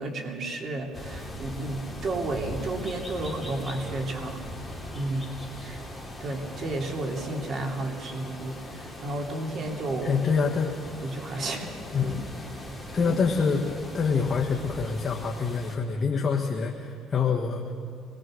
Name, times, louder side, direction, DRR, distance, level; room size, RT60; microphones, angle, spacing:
voice 1, 0.0-4.4 4.9-5.3 5.5-5.8 6.2-10.2 11.0-11.7 12.0-12.1 13.0-13.2, right 2 dB, 40° right, 2 dB, 2.8 m, -32 dB
sound 1, 0.9-15.8, left 1 dB, 5° right, 3.0 m, -40 dB
voice 2, 10.0-10.7 11.9-12.2 12.9-17.6, left 5 dB, 25° left, 0 dB, 1.4 m, -26 dB
26.0 x 20.0 x 6.4 m, 2.4 s
cardioid pair, 140°, 0 cm